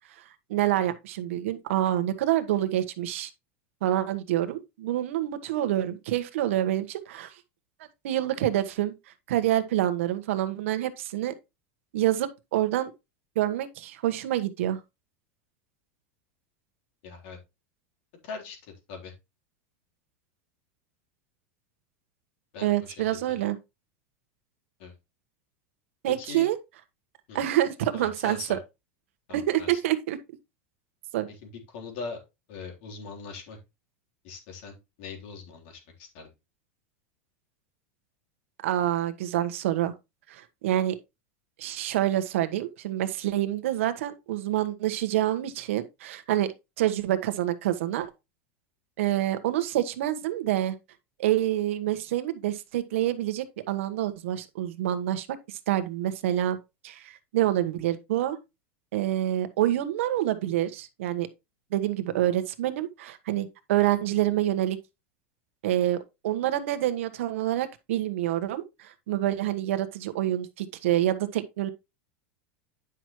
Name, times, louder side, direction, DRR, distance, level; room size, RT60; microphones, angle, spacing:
voice 1, 0.5-3.3 3.8-7.3 8.0-8.9 9.3-11.3 11.9-12.9 13.3-14.8 22.6-23.6 26.0-26.6 27.3-28.6 29.3-30.2 31.1-31.3 38.6-39.9 40.3-41.0 41.6-46.5 46.8-48.1 49.0-50.8 51.2-56.6 56.8-58.4 58.9-61.3 61.7-64.8 65.6-71.7, right 13 dB, 80° right, 1.3 m, -27 dB
voice 2, 17.0-17.4 18.2-18.6 18.9-19.1 22.5-22.7 23.1-23.4 24.8-24.9 26.2-26.5 27.3-27.4 27.9-28.6 29.3-29.8 31.4-32.2 32.5-33.6 34.2-36.3, left 4 dB, 65° left, 3.7 m, -41 dB
9.9 x 6.1 x 3.1 m
supercardioid pair, 145°, 7 cm